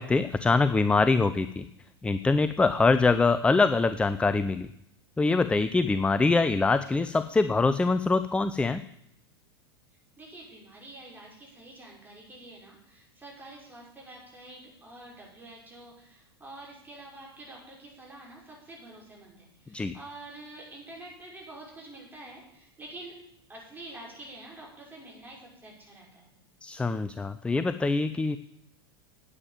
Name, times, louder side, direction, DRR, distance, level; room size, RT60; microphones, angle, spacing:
voice 1, 0.0-1.7 2.0-4.7 5.2-8.8 19.7-19.9 26.6-28.4, left 3 dB, 10° left, 12 dB, 0.5 m, -24 dB
voice 2, 10.2-23.1 23.5-26.3, right 2 dB, 15° right, -2 dB, 6.0 m, -47 dB
9.9 x 8.9 x 7.3 m, 0.76 s
hypercardioid pair, 90°, 13 cm